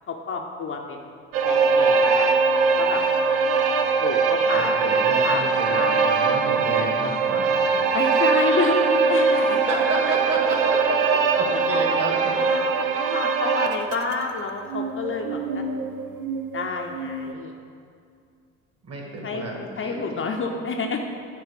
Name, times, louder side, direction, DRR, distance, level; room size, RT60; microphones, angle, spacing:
voice 1, 0.1-1.0 1.4-2.3 2.8-3.0 4.0-5.0 5.2-5.4 5.7-6.0 7.9-9.6 10.0-10.1 11.5-12.0 12.3-15.9 16.5-17.5 19.2-21.0, left 4 dB, 30° left, 2 dB, 0.7 m, -29 dB
sound 1, 1.3-14.2 14.7-17.3, right 5 dB, 60° right, 0.8 m, -22 dB
voice 2, 4.5-7.6 9.3-12.4 18.8-20.2, right 2 dB, 35° right, 0 dB, 2.2 m, -30 dB
10.0 x 4.6 x 5.0 m, 2.3 s
figure-of-eight pair, 60°, 40 cm